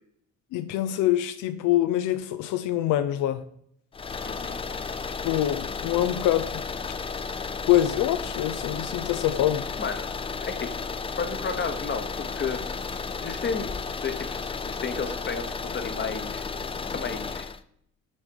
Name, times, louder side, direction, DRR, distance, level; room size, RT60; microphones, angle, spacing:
voice 1, 0.5-3.5 5.2-6.6 7.7-9.7, left 13 dB, 90° left, 0.5 m, -25 dB
sound 1, 3.9-17.6, left 4 dB, 20° left, 0.3 m, -33 dB
voice 2, 4.2-4.6 9.8-10.0 10.4-10.7 11.2-12.6 13.2-13.7 14.0-16.5 16.9-17.5, left 5 dB, 35° left, 1.0 m, -32 dB
6.2 x 3.5 x 5.6 m
cardioid pair, 90°, 30 cm